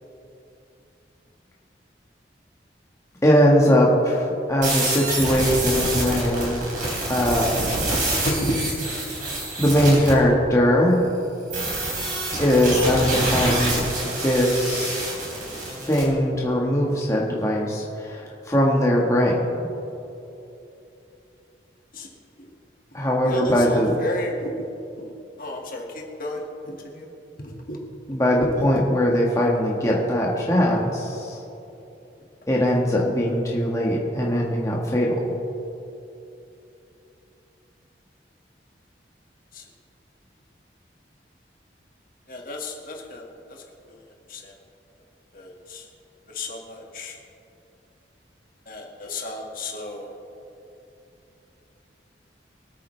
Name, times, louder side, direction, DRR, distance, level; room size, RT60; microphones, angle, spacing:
voice 1, 3.2-6.6 7.1-7.6 9.6-11.0 12.4-15.1 15.8-19.7 22.9-23.9 28.1-31.4 32.5-35.3, equal, 15° left, -3 dB, 1.4 m, -21 dB
sound 1, 4.6-10.1 11.5-16.0, right 1 dB, 45° right, 3.4 m, -27 dB
voice 2, 7.6-8.6 9.4-9.5 21.9-22.1 22.4-22.5 23.2-24.7 25.0-27.1 27.4-27.8 28.4-28.5 39.5-39.6 42.3-43.6 43.9-44.0 44.3-44.5 45.3-45.9 46.3-47.2 48.7-50.2, left 1 dB, 50° left, 0 dB, 1.9 m, -33 dB
24.0 x 8.9 x 3.3 m, 2.8 s
head